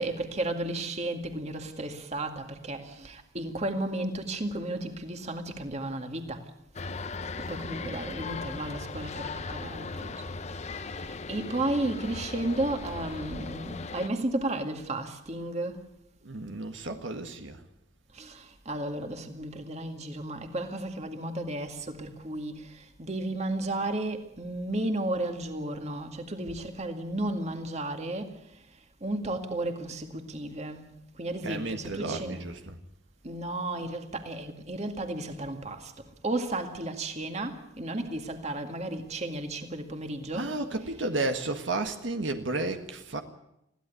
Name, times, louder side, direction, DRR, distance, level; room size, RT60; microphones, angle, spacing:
voice 1, 0.0-6.5 7.4-15.9 18.1-32.5 33.2-40.9, right 1 dB, 35° right, 2.1 m, -34 dB
sound 1, 6.7-14.1, left 4 dB, 35° left, 0.8 m, -38 dB
voice 2, 16.2-17.6 31.4-32.8 40.3-43.2, right 2 dB, 75° right, 1.7 m, -32 dB
21.5 x 16.0 x 8.3 m
head